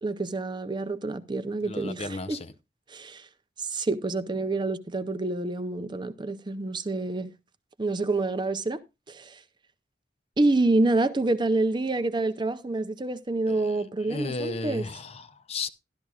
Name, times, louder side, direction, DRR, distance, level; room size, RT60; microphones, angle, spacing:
voice 1, 0.0-2.4 2.9-3.3 3.6-7.3 7.8-8.8 9.1-9.4 10.4-14.9, right 2 dB, 25° right, 0.6 m, -27 dB
voice 2, 1.6-2.5 13.5-13.7 14.1-15.7, left 3 dB, 35° left, 0.6 m, -34 dB
12.5 x 11.5 x 2.4 m
head